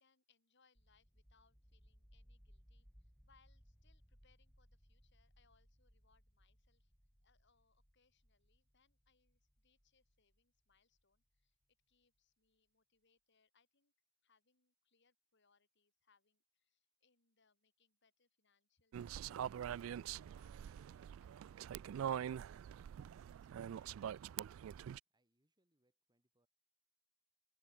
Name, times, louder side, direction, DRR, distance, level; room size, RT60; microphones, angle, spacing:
voice 1, 0.0-6.9 7.2-11.6 11.9-13.9 14.2-19.2 19.8-23.9, left 5 dB, 60° left, 4.8 m, -78 dB
sound 1, 0.8-11.4, equal, ahead, 0.9 m, -68 dB
sound 2, 18.9-25.0, right 9 dB, 80° right, 0.3 m, -44 dB
voice 2, 24.4-26.5, right 1 dB, 20° right, 7.1 m, -84 dB
open air
head